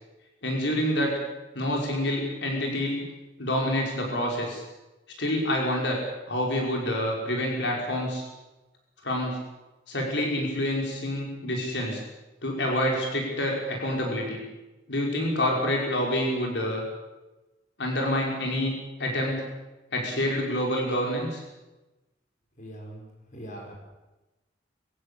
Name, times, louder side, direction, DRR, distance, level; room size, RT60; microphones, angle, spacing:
voice 1, 0.4-1.2 1.5-3.0 3.4-4.6 5.2-6.0 6.3-8.2 9.0-9.4 9.9-12.0 12.4-14.4 14.9-16.8 17.8-18.7 19.0-19.4 19.9-21.4, left 1 dB, 75° left, -1 dB, 5.6 m, -27 dB
voice 2, 22.6-23.8, right 1 dB, 45° left, 0 dB, 6.1 m, -42 dB
24.5 x 16.0 x 8.6 m, 1.1 s
head